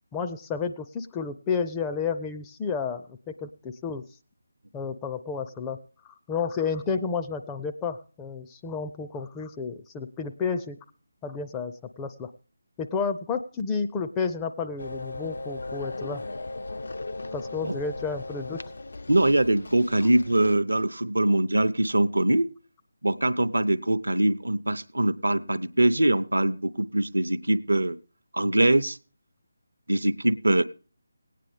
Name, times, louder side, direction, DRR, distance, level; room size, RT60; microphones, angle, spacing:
voice 1, 0.1-4.0 4.7-5.8 6.0-10.8 11.2-12.3 12.8-16.2 17.3-18.6, left 5 dB, 10° left, 6 dB, 0.5 m, -31 dB
sound 1, 14.8-20.6, left 2 dB, 60° left, 0.5 m, -37 dB
voice 2, 19.1-22.5 23.0-28.0 28.3-29.0 29.9-30.6, right 1 dB, 75° right, 12 dB, 0.7 m, -23 dB
18.0 x 9.1 x 3.5 m, 0.38 s
figure-of-eight pair, 155°, 0 cm